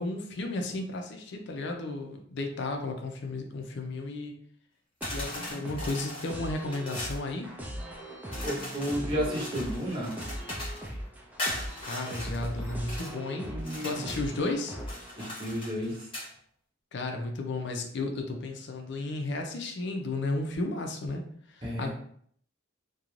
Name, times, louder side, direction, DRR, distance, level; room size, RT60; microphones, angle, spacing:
voice 1, 0.0-4.4 5.1-7.5 11.8-13.5 13.8-14.8 16.9-21.2 21.5-21.9, left 2 dB, 60° left, 3 dB, 0.5 m, -33 dB
sound 1, 5.0-7.2 8.3-10.9 11.4-13.1 13.6-14.3 14.8-16.3, left 1 dB, 25° left, 0.8 m, -39 dB
sound 2, 5.0-15.3, equal, 10° right, 0.4 m, -39 dB
voice 2, 8.4-10.2 13.5-14.0 15.2-16.1 21.6-21.9, equal, 25° right, -4 dB, 0.7 m, -32 dB
2.5 x 2.2 x 3.0 m, 0.62 s
head